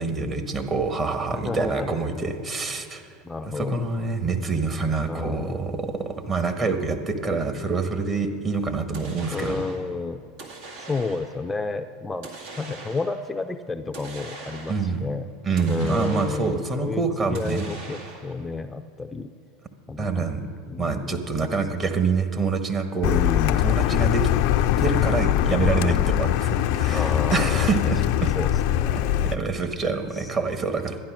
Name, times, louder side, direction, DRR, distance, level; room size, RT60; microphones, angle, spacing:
voice 1, 0.0-3.1 3.5-9.6 14.7-15.0 15.4-17.7 20.0-20.4 20.8-23.2 23.6-24.3 24.8-28.3 29.2-31.0, right 4 dB, 30° right, 7 dB, 1.4 m, -26 dB
voice 2, 1.3-2.0 3.2-3.8 5.0-5.7 9.3-10.2 10.8-12.3 12.5-15.3 15.7-17.0 17.3-19.3 19.9-20.3 20.6-21.3 23.0-23.7 26.9-27.7 28.3-29.4 30.1-30.3, left 3 dB, 15° left, 7 dB, 0.5 m, -31 dB
sound 1, 8.9-9.9 10.4-11.4 12.2-13.3 13.9-15.0 15.6-16.7 17.3-18.4, right 3 dB, 70° right, 2.0 m, -41 dB
Car, 23.0-29.3, left 11 dB, 65° left, 0.5 m, -22 dB
12.0 x 10.0 x 6.2 m, 2.4 s
hypercardioid pair, 95°, 0 cm